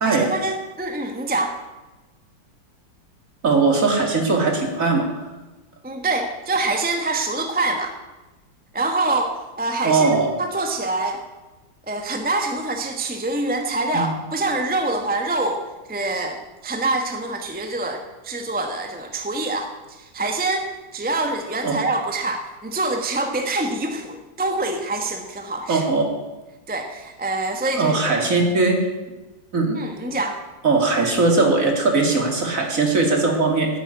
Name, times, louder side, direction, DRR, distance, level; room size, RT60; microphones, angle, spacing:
voice 1, 0.0-1.5 5.8-7.9 8.7-11.2 11.9-15.6 15.9-16.4 16.6-25.8 26.7-28.2 29.7-30.4, right 2 dB, 5° right, 4 dB, 0.8 m, -25 dB
voice 2, 3.4-5.1 9.8-10.3 13.9-14.1 21.6-21.7 25.7-26.0 27.7-28.8 29.5-29.8 30.6-33.7, right 3 dB, 40° right, 2 dB, 2.6 m, -19 dB
11.0 x 8.6 x 9.6 m, 1.1 s
omnidirectional pair, 2.2 m